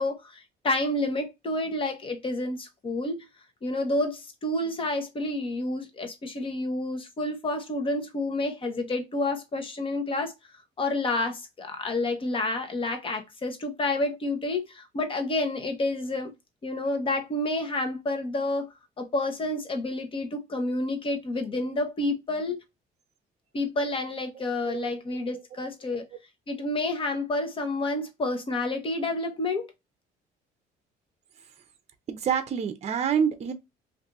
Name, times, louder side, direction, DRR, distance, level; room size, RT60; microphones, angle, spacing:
voice 1, 0.0-3.3 3.6-10.3 10.8-16.3 16.6-22.6 23.5-26.1 26.5-29.7, left 2 dB, 30° left, 1.0 m, -29 dB
voice 2, 32.1-33.5, right 7 dB, 40° right, 0.6 m, -27 dB
2.7 x 2.6 x 3.4 m
cardioid pair, 110°, 17 cm